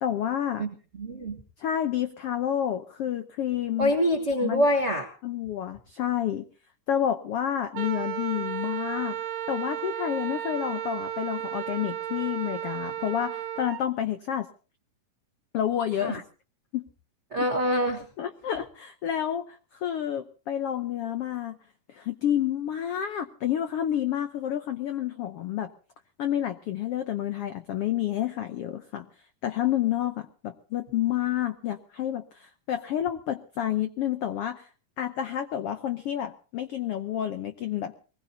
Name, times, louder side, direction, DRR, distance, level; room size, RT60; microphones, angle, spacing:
voice 1, 0.0-0.6 1.6-3.9 4.4-4.6 5.2-6.5 6.9-9.2 9.5-14.5 15.5-16.2 16.7-16.8 18.2-21.6 21.9-25.7 26.2-29.1 29.4-34.7 35.0-38.0, left 10 dB, 90° left, 8 dB, 1.3 m, -29 dB
voice 2, 1.0-1.4 3.8-5.1 16.0-16.1 17.3-18.0, equal, 40° right, 2 dB, 1.0 m, -25 dB
Wind instrument woodwind instrument, 7.7-13.8, right 10 dB, 80° right, 2.5 m, -34 dB
23.0 x 20.0 x 2.8 m, 0.37 s
omnidirectional pair, 3.9 m